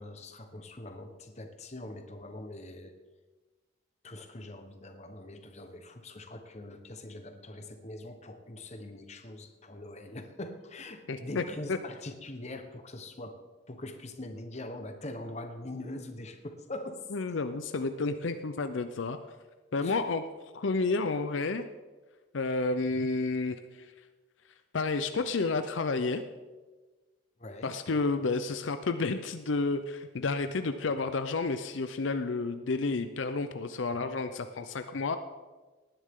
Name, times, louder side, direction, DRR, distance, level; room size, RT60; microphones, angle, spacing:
voice 1, 0.0-2.9 4.0-13.4 13.7-17.1 19.8-20.0 27.4-27.7, left 1 dB, 35° left, 6 dB, 1.1 m, -43 dB
voice 2, 11.1-11.4 11.7-11.8 17.1-19.2 19.7-20.2 20.5-21.6 22.3-23.9 24.7-26.2 27.6-35.2, left 3 dB, 75° left, 9 dB, 0.6 m, -30 dB
19.0 x 10.0 x 3.7 m, 1.3 s
head